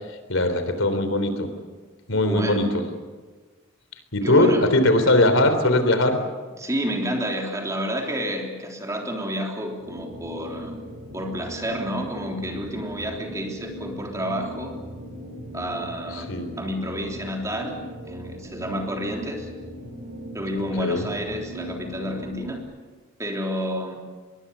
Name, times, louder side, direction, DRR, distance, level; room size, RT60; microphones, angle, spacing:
voice 1, 0.3-1.5 2.1-2.8 4.1-6.2 16.1-16.5 20.8-21.1, left 1 dB, 85° left, 8 dB, 3.5 m, -20 dB
voice 2, 2.2-2.8 4.2-4.7 6.6-10.7 11.1-14.8 15.5-16.3 16.6-17.8 18.0-19.5 20.3-22.6 23.2-24.0, equal, 15° right, 1 dB, 3.4 m, -30 dB
sound 1, 9.8-22.6, equal, 55° right, 7.9 m, -38 dB
24.5 x 22.0 x 7.0 m, 1.3 s
head